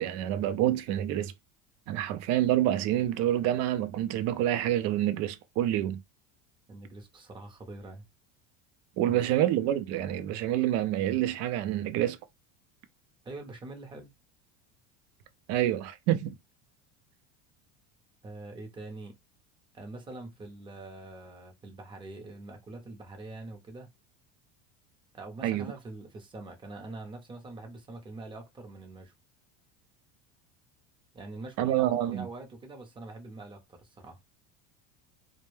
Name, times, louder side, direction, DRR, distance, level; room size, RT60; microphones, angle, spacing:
voice 1, 0.0-1.3 1.9-6.0 9.0-12.2 15.5-16.3 25.4-25.7 31.6-32.3, right 12 dB, 50° right, 0.5 m, -27 dB
voice 2, 6.7-8.0 9.1-9.3 13.2-14.1 18.2-19.1 19.7-23.9 25.1-29.1 31.1-34.2, right 2 dB, 15° right, 0.7 m, -44 dB
2.2 x 2.1 x 3.1 m
supercardioid pair, 135°, 34 cm